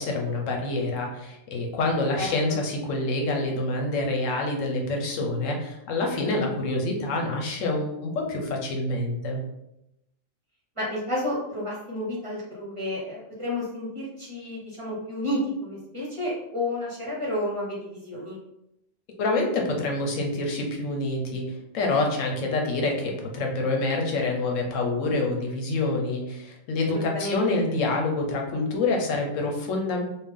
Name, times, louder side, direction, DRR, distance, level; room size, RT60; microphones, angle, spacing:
voice 1, 0.0-9.4 19.2-30.0, left 2 dB, 80° left, 1 dB, 1.1 m, -27 dB
voice 2, 10.8-18.4 27.1-27.5, left 1 dB, 30° right, -5 dB, 0.9 m, -31 dB
3.4 x 2.4 x 3.6 m, 0.85 s
omnidirectional pair, 1.3 m